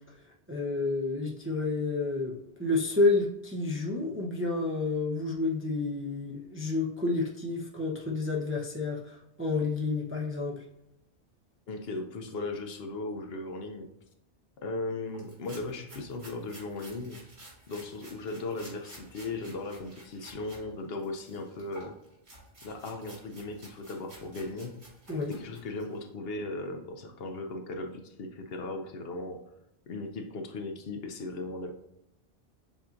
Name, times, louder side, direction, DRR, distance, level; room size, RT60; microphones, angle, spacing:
voice 1, 0.5-10.6 25.1-25.4, left 3 dB, 15° right, -3 dB, 0.5 m, -30 dB
voice 2, 11.7-13.9 14.6-17.2 17.7-21.9 22.6-24.8 25.3-29.4 29.9-31.7, left 2 dB, 65° left, 5 dB, 0.8 m, -37 dB
sound 1, 15.1-20.6 21.0-26.0, right 1 dB, 70° right, 2.2 m, -52 dB
7.1 x 2.8 x 2.5 m, 0.84 s
omnidirectional pair, 1.1 m